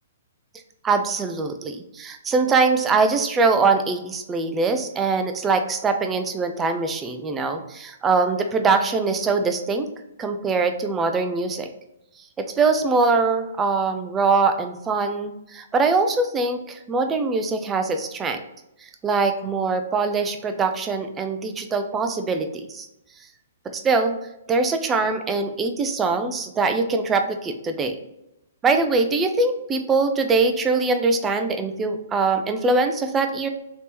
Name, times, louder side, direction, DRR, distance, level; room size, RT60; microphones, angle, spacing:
voice 1, 0.8-9.9 10.2-11.7 12.4-18.4 19.0-22.9 23.7-24.1 24.5-28.0 28.6-33.5, right 4 dB, 15° right, 6 dB, 0.4 m, -22 dB
3.2 x 2.9 x 2.8 m, 0.87 s
figure-of-eight pair, 120°, 0 cm